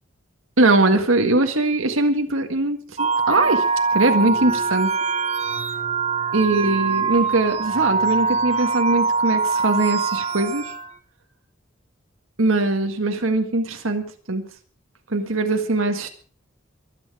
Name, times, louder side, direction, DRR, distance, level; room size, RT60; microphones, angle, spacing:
voice 1, 0.6-3.7 3.9-4.9 6.3-10.6 12.4-14.4 15.1-16.1, right 2 dB, 85° right, 5 dB, 1.8 m, -21 dB
sound 1, 3.0-10.9, right 5 dB, 30° right, 1.2 m, -23 dB
23.5 x 9.2 x 4.9 m, 0.42 s
head